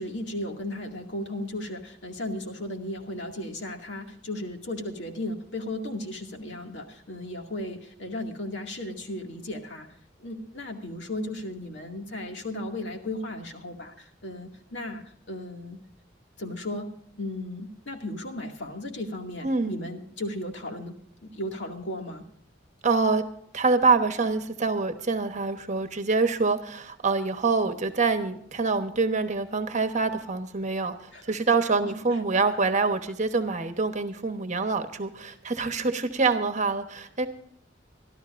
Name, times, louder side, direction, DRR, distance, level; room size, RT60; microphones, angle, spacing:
voice 1, 0.0-9.9 10.2-15.8 16.4-16.9 17.2-20.9 21.2-22.2 31.1-31.4 31.8-31.9, left 1 dB, 70° left, 3 dB, 2.3 m, -35 dB
voice 2, 19.4-19.8 22.8-23.2 23.5-37.3, right 4 dB, 40° right, 8 dB, 1.1 m, -25 dB
25.0 x 12.5 x 2.6 m, 0.66 s
head